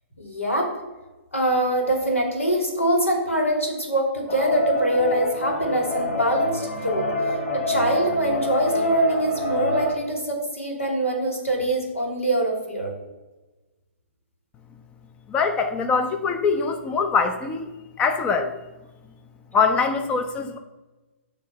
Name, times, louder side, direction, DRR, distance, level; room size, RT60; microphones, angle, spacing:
voice 1, 0.2-0.7 1.3-7.1 7.5-12.9, right 1 dB, 80° left, 0 dB, 2.6 m, -24 dB
sound 1, 4.3-9.9, left 1 dB, 50° left, 2.1 m, -26 dB
voice 2, 15.3-17.7 18.0-18.5 19.5-20.6, left 5 dB, 15° left, 7 dB, 0.5 m, -23 dB
9.2 x 3.4 x 6.7 m, 1.1 s
figure-of-eight pair, 120°, 7 cm